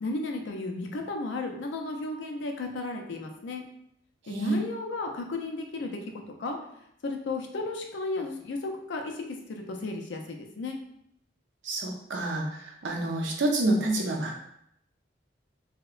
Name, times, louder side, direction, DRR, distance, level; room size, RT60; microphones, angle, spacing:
voice 1, 0.0-3.6 4.3-6.6 7.0-10.8, left 2 dB, 75° left, 3 dB, 0.4 m, -34 dB
voice 2, 11.6-14.4, right 2 dB, 80° right, 1 dB, 0.5 m, -28 dB
2.7 x 2.1 x 2.3 m, 0.73 s
head